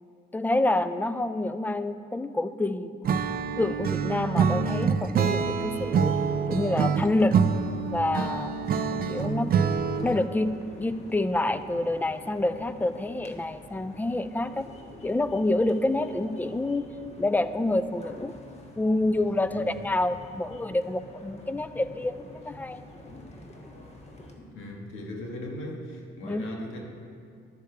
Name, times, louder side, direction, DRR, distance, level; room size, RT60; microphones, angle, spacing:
voice 1, 0.3-2.9 3.6-6.1 6.5-7.4 7.9-8.5 9.1-9.6 10.0-14.7 15.0-16.9 17.2-18.3 18.8-22.8 26.2-26.4, left 2 dB, 10° left, 12 dB, 0.4 m, -27 dB
Acoustic guitar / Strum, 3.0-10.2, right 6 dB, 50° right, 0.5 m, -26 dB
sound 1, 5.6-24.3, left 1 dB, 35° left, 1.4 m, -48 dB
voice 2, 24.4-26.8, left 1 dB, 90° left, 0 dB, 1.6 m, -38 dB
11.5 x 6.7 x 4.6 m, 2.3 s
cardioid pair, 90°, 20 cm